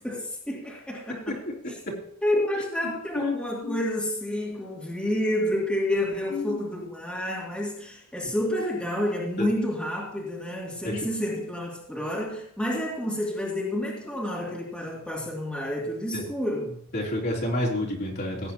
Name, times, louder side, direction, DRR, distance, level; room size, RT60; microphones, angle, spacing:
voice 1, 0.0-1.4 2.2-16.8, left 1 dB, 5° left, -5 dB, 2.5 m, -29 dB
voice 2, 3.1-3.8 6.3-6.6 9.4-9.5 10.8-11.0 16.1-16.2 16.9-18.5, left 1 dB, 50° left, -4 dB, 3.2 m, -29 dB
17.0 x 9.0 x 2.9 m, 0.71 s
head